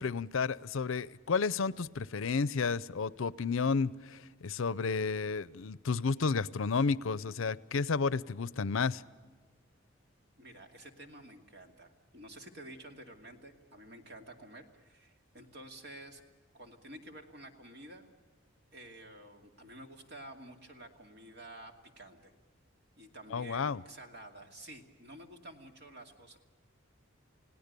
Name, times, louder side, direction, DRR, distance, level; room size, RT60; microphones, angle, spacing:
voice 1, 0.0-9.0 23.3-23.8, left 5 dB, 80° left, 19 dB, 0.6 m, -32 dB
voice 2, 10.4-16.2 16.5-18.1 18.7-22.3 23.0-26.4, right 1 dB, 55° right, 4 dB, 2.5 m, -51 dB
29.5 x 17.5 x 6.8 m, 1.5 s
head